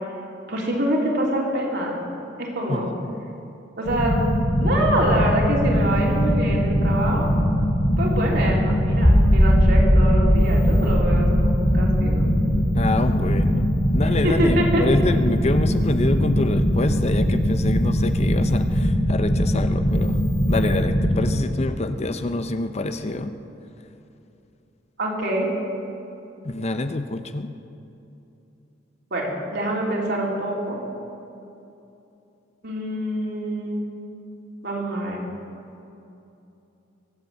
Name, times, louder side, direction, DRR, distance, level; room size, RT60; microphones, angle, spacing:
voice 1, 0.5-2.0 2.4-2.9 3.8-4.2 4.6-7.3 8.0-12.2 14.2-14.8 25.0-25.5 29.1-30.8 32.6-33.8 34.6-35.2, right 1 dB, 60° right, -3 dB, 3.6 m, -25 dB
voice 2, 2.7-3.4 12.7-20.2 20.5-23.3 26.4-27.5, left 2 dB, 35° left, 9 dB, 0.6 m, -26 dB
sound 1, 3.8-21.3, equal, 55° left, 3.9 m, -21 dB
sound 2, 9.0-15.1, equal, 10° left, 1.2 m, -21 dB
22.5 x 8.2 x 7.9 m, 2.8 s
head